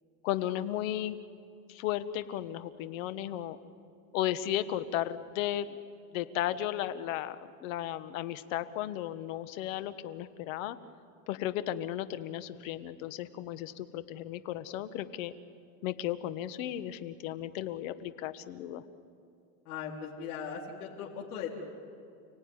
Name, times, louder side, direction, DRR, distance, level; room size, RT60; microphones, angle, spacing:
voice 1, 0.2-1.2 1.7-3.6 4.1-5.8 6.1-10.8 11.3-15.3 15.8-18.8, left 12 dB, 65° left, 12 dB, 1.5 m, -35 dB
voice 2, 19.6-21.5, left 7 dB, 85° left, -4 dB, 4.2 m, -39 dB
30.0 x 18.0 x 9.7 m, 2.4 s
supercardioid pair, 155°, 43 cm